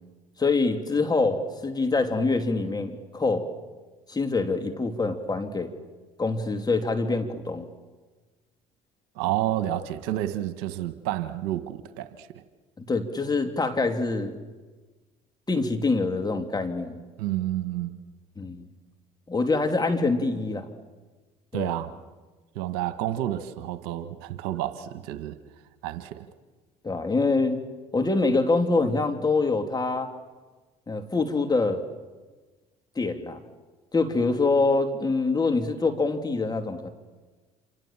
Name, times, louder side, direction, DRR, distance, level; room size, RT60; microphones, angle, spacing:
voice 1, 0.4-3.5 4.1-5.7 6.2-7.7 12.8-14.4 15.5-17.0 18.4-18.7 19.3-20.7 21.5-21.8 26.8-27.6 27.9-30.1 30.9-31.8 32.9-33.4 33.9-36.9, left 3 dB, 25° left, 5 dB, 3.1 m, -25 dB
voice 2, 9.1-12.4 17.2-18.0 21.5-21.9 22.5-25.4 25.8-26.2, right 13 dB, 75° right, 10 dB, 1.5 m, -30 dB
28.0 x 27.5 x 7.5 m, 1.3 s
hypercardioid pair, 65°, 17 cm